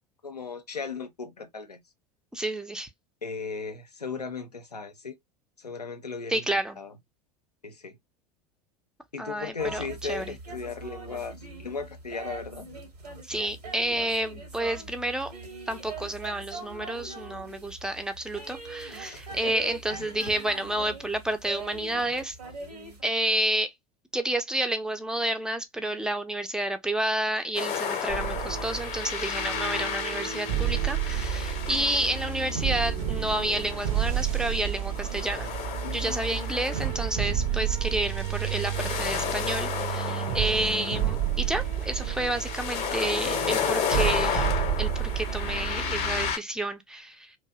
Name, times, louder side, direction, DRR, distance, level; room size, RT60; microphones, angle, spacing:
voice 1, 0.2-1.8 3.2-5.2 5.6-6.4 6.8-6.9 7.6-8.0 9.1-12.7 19.0-20.1 35.8-36.2, left 5 dB, 90° left, 0.5 m, -37 dB
voice 2, 2.3-2.9 6.3-6.8 9.2-10.3 13.3-15.3 15.7-22.4 23.0-23.7 24.1-35.5 35.9-47.3, right 1 dB, 5° right, 0.4 m, -30 dB
sound 1, 9.6-23.0, right 3 dB, 80° right, 1.0 m, -42 dB
sound 2, 27.6-46.4, left 7 dB, 35° left, 0.6 m, -33 dB
sound 3, 28.1-46.3, right 10 dB, 60° right, 0.6 m, -30 dB
2.5 x 2.1 x 2.3 m
figure-of-eight pair, 80°, 20 cm